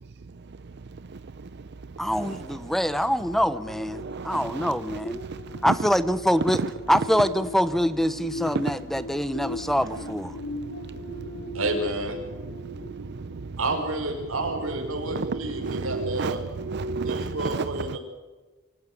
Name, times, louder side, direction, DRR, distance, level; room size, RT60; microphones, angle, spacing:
voice 1, 2.0-5.2 5.6-10.4, equal, ahead, 0.7 m, -25 dB
sound 1, 3.5-13.4 13.8-14.0, left 1 dB, 90° left, 2.8 m, -39 dB
voice 2, 4.0-5.7 6.6-6.7 10.3-11.6 12.4-13.6 14.9-18.0, right 4 dB, 55° right, 0.6 m, -33 dB
voice 3, 11.5-12.2 13.6-16.4 17.0-18.0, right 2 dB, 90° right, 5.2 m, -30 dB
25.0 x 14.0 x 9.6 m
head